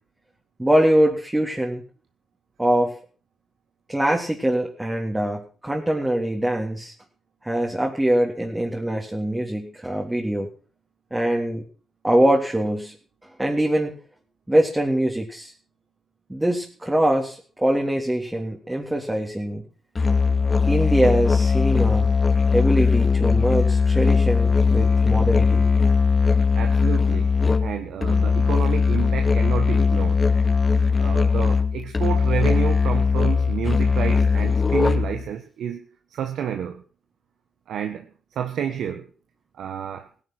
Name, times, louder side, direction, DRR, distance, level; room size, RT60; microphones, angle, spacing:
voice 1, 0.6-1.8 2.6-3.0 3.9-6.9 7.4-10.5 11.1-11.6 12.0-12.9 13.4-14.0 14.5-15.5 16.3-19.6 20.7-22.2 22.5-25.7, right 1 dB, 15° right, 3.4 m, -23 dB
Musical instrument, 19.9-35.3, left 5 dB, 35° left, 2.6 m, -19 dB
voice 2, 26.5-30.3 31.0-35.8 36.1-36.8 37.7-39.1 39.5-40.1, right 9 dB, 75° right, 1.5 m, -30 dB
17.0 x 11.0 x 6.3 m
supercardioid pair, 50°, 0 cm